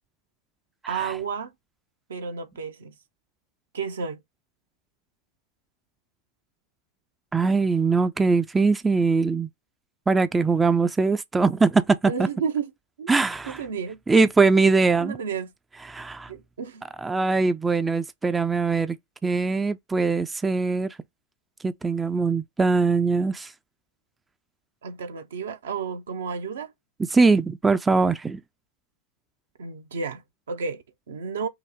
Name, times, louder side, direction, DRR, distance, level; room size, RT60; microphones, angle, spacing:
voice 1, 0.9-1.5 2.1-2.9 3.7-4.2 12.1-12.7 13.0-13.1 13.4-14.0 15.0-15.5 16.3-16.8 24.8-26.7 29.6-31.5, right 6 dB, 65° right, 0.6 m, -32 dB
voice 2, 7.3-9.5 10.1-12.3 13.1-13.6 14.1-15.1 15.9-16.3 17.0-19.0 19.2-21.0 21.6-23.5 27.1-28.4, right 4 dB, 10° right, 0.4 m, -22 dB
5.7 x 2.1 x 4.0 m
figure-of-eight pair, 90°, 0 cm